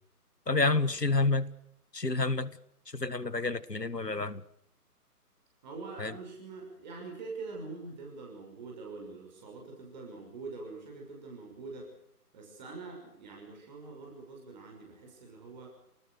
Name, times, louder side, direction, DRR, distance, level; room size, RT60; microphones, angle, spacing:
voice 1, 0.5-1.5 1.9-2.6 2.9-4.4 6.0-6.1, left 3 dB, 90° left, 16 dB, 1.9 m, -29 dB
voice 2, 5.6-11.9 12.3-15.7, right 3 dB, 30° right, 0 dB, 6.3 m, -44 dB
29.0 x 19.5 x 6.7 m, 0.73 s
figure-of-eight pair, 145°, 47 cm